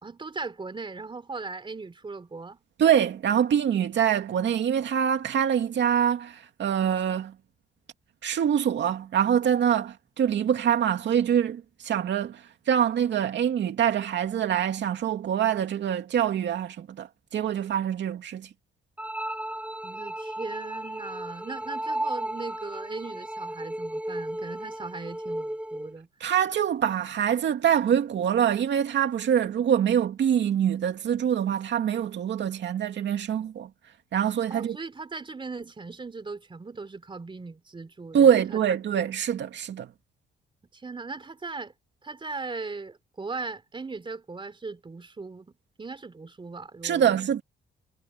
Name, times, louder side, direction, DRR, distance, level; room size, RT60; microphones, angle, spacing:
voice 1, 0.0-2.6 19.8-26.1 34.5-38.6 40.7-41.7 42.0-45.5 45.8-47.2, right 4 dB, 25° right, 3.3 m, -38 dB
voice 2, 2.8-7.3 8.2-17.1 17.3-18.5 26.2-33.7 34.1-34.8 38.1-39.9 46.8-47.4, right 9 dB, 65° right, 2.6 m, -24 dB
sound 1, 19.0-26.0, right 1 dB, 5° right, 3.6 m, -34 dB
cardioid pair, 90°, 20 cm